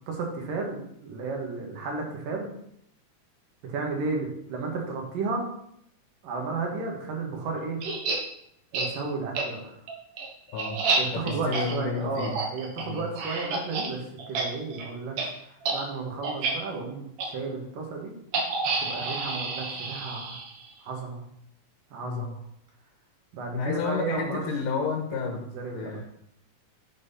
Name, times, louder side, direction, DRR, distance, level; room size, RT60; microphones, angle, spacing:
voice 1, 0.1-2.5 3.6-5.5 6.2-7.8 8.7-9.8 11.0-14.0 14.3-15.2 15.7-17.1 17.3-18.1 18.8-20.4 20.8-21.2 21.9-22.4 23.3-24.4 25.3-26.0, right 3 dB, 80° right, 0 dB, 3.6 m, -33 dB
sound 1, 7.8-8.2 8.7-8.9 9.4-9.5 9.9-13.9 14.2-14.5 14.7-14.9 15.2-15.3 15.6-15.8 16.2-16.5 17.2-17.3 18.3-20.7, right 3 dB, 60° right, 2.5 m, -29 dB
voice 2, 10.5-10.8 11.1-12.4 12.8-13.0 22.0-22.3 23.5-25.5 25.7-26.0, left 5 dB, 80° left, 2 dB, 2.7 m, -31 dB
11.0 x 4.5 x 5.6 m, 0.74 s
omnidirectional pair, 3.8 m